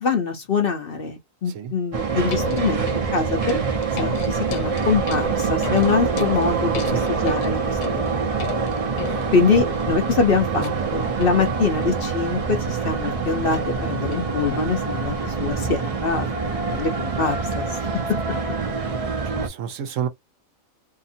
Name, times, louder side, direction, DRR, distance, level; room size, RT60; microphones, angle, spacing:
voice 1, 0.0-8.2 9.3-13.6 13.9-17.8, left 5 dB, 55° left, 0.7 m, -24 dB
sound 1, 1.9-19.5, right 5 dB, 40° right, 0.5 m, -25 dB
sound 2, 2.1-17.6 18.6-18.7, left 6 dB, 80° left, 1.1 m, -36 dB
voice 2, 9.0-9.3 10.5-10.9 17.7-18.1 19.3-20.1, right 8 dB, 75° right, 1.0 m, -32 dB
2.8 x 2.5 x 2.6 m
omnidirectional pair, 1.4 m